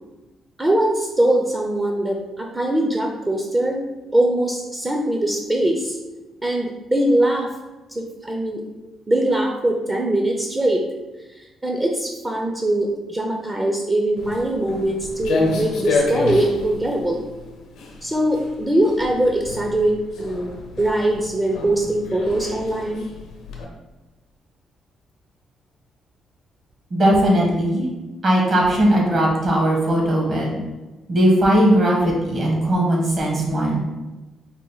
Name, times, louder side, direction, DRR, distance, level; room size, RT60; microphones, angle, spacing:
voice 1, 0.6-3.8 4.1-6.0 6.4-7.5 7.9-8.6 9.1-10.8 11.6-17.2 18.0-23.0, right 1 dB, 20° right, 1 dB, 0.5 m, -22 dB
Walk footsteps, 14.2-23.6, left 3 dB, 85° left, 0.7 m, -29 dB
voice 2, 26.9-27.8 28.2-30.6 31.1-33.8, right 1 dB, 50° right, -2 dB, 1.3 m, -18 dB
4.3 x 2.2 x 3.9 m, 1.1 s
cardioid pair, 90°, 0 cm